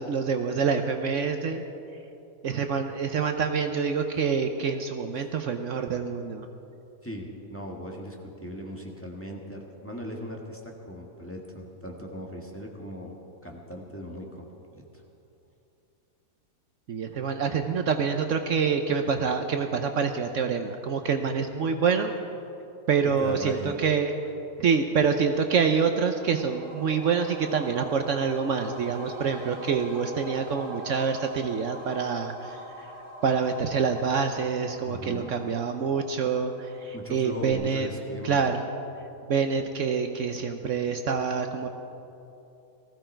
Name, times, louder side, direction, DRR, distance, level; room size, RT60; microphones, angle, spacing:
voice 1, 0.0-1.6 2.4-6.5 16.9-22.1 22.9-24.1 24.6-32.9 33.2-37.9 38.2-38.6 39.2-41.7, right 6 dB, 65° right, 6 dB, 1.0 m, -26 dB
voice 2, 7.0-13.2 13.4-15.0 23.2-23.8 34.9-35.3 36.9-38.5, equal, 10° left, -1 dB, 1.6 m, -39 dB
sound 1, 26.0-37.2 37.5-37.6, right 1 dB, 85° right, 2.8 m, -44 dB
19.0 x 15.0 x 4.5 m, 2.8 s
omnidirectional pair, 1.5 m